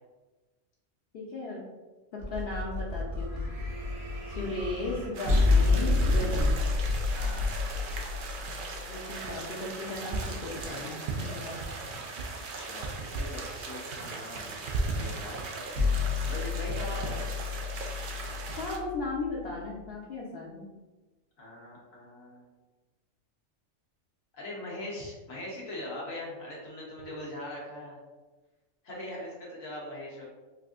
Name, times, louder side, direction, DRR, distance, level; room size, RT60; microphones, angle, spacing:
voice 1, 1.1-1.7 2.1-3.4 4.3-6.6 8.9-11.6 18.6-20.7, left 2 dB, 55° left, -5 dB, 0.8 m, -36 dB
sound 1, 2.2-9.5 15.7-19.8, left 3 dB, 80° right, 1.2 m, -29 dB
voice 2, 4.3-4.7 7.1-7.5 12.5-15.5 16.3-17.3 21.4-22.5 24.3-28.0 28.8-30.2, left 1 dB, 85° left, -5 dB, 1.5 m, -41 dB
sound 2, 5.1-18.8, right 3 dB, 65° right, 0.5 m, -37 dB
4.7 x 2.6 x 2.4 m, 1.2 s
omnidirectional pair, 1.4 m